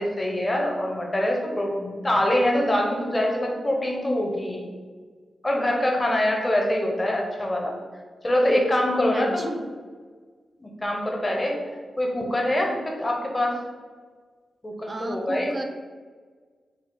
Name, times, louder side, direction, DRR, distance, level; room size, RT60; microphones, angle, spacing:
voice 1, 0.0-4.6 5.4-7.7 8.2-9.5 10.6-11.6 12.0-12.7 13.0-13.5 14.6-15.5, left 1 dB, 25° left, 0 dB, 0.9 m, -24 dB
voice 2, 9.1-9.5 14.9-15.6, right 2 dB, 35° right, 5 dB, 0.4 m, -34 dB
4.7 x 2.0 x 3.8 m, 1.5 s
cardioid pair, 70°, 0 cm